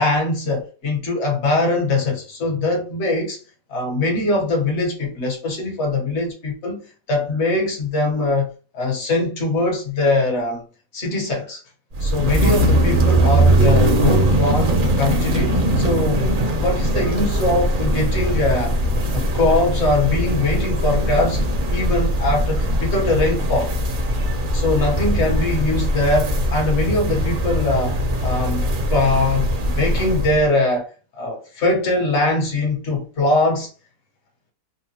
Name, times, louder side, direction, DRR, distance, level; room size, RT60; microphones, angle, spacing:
voice 1, 0.0-3.4 3.7-6.8 7.1-8.5 8.7-10.6 10.9-11.6 12.0-18.7 19.1-23.7 24.5-30.9 31.2-33.7, left 2 dB, 50° left, 1.2 m, -22 dB
sound 1, 11.9-30.5, right 1 dB, 50° right, 0.6 m, -20 dB
3.7 x 2.2 x 2.8 m
omnidirectional pair, 1.6 m